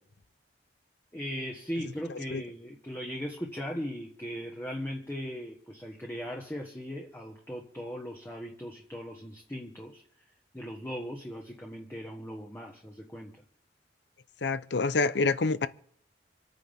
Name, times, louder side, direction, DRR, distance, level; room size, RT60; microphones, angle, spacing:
voice 1, 1.1-10.0 10.5-13.3, equal, 15° left, 1.4 m, -38 dB
voice 2, 14.4-15.7, left 3 dB, 70° left, 0.7 m, -27 dB
27.5 x 9.4 x 3.6 m
head